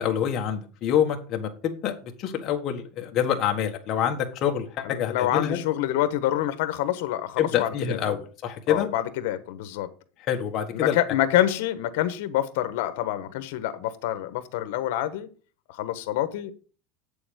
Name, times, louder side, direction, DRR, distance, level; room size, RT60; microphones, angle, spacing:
voice 1, 0.0-1.9 2.2-5.6 7.4-8.9 10.3-11.0, left 9 dB, 35° left, 1.4 m, -26 dB
voice 2, 4.8-8.0 8.7-9.9 10.7-15.3 15.7-16.5, left 13 dB, 70° left, 1.2 m, -27 dB
8.5 x 7.0 x 5.1 m
cardioid pair, 170°, 0 cm